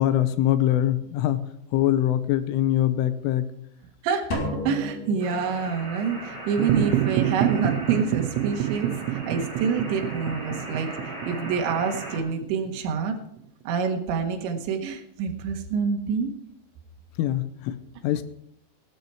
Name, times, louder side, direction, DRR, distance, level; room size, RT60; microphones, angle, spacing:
voice 1, 0.0-3.5 17.2-18.2, left 12 dB, 85° left, 12 dB, 3.2 m, -23 dB
voice 2, 4.0-13.2 13.7-16.3, right 6 dB, 70° right, 3 dB, 3.7 m, -27 dB
sound 1, 4.3-6.1, left 3 dB, 60° left, 3.8 m, -33 dB
sound 2, 5.2-12.2, right 1 dB, 5° left, 4.1 m, -38 dB
sound 3, 6.6-13.2, right 13 dB, 90° right, 3.4 m, -27 dB
15.5 x 12.0 x 4.6 m, 0.72 s
omnidirectional pair, 5.7 m